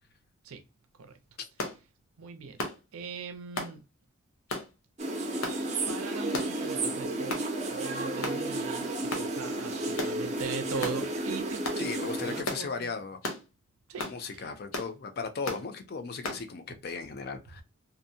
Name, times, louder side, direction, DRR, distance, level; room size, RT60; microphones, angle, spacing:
sound 1, 1.6-1.8 2.6-2.8 3.6-3.7 4.5-4.7 5.4-5.6 6.3-6.6 7.3-7.5 8.2-8.4 9.1-9.3 10.0-10.2 10.8-11.0 11.6-11.8 12.4-12.7 13.2-13.4 14.0-14.2 14.7-14.9 15.4-15.6 16.2-16.4, left 2 dB, 80° left, 0.7 m, -34 dB
voice 1, 2.2-2.6 2.9-3.8 5.9-7.4 7.7-8.9 9.2-11.9 12.2-12.9 13.9-14.1, right 5 dB, 90° right, 0.5 m, -40 dB
sound 2, 5.0-12.4, right 2 dB, 30° right, 0.4 m, -32 dB
voice 2, 11.8-13.2 14.0-17.6, left 4 dB, 45° left, 0.4 m, -37 dB
2.6 x 2.0 x 2.6 m
head